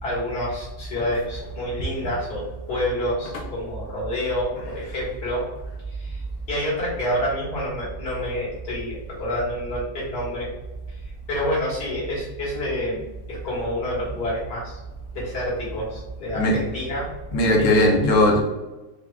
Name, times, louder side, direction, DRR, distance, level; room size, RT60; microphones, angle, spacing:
voice 1, 0.0-5.4 5.9-10.5 11.3-13.0 13.3-14.8 15.1-17.1 17.6-17.9, left 1 dB, 65° left, -6 dB, 2.2 m, -28 dB
voice 2, 17.3-18.4, left 1 dB, 90° left, -1 dB, 1.6 m, -18 dB
4.9 x 2.4 x 3.6 m, 1.1 s
omnidirectional pair, 1.9 m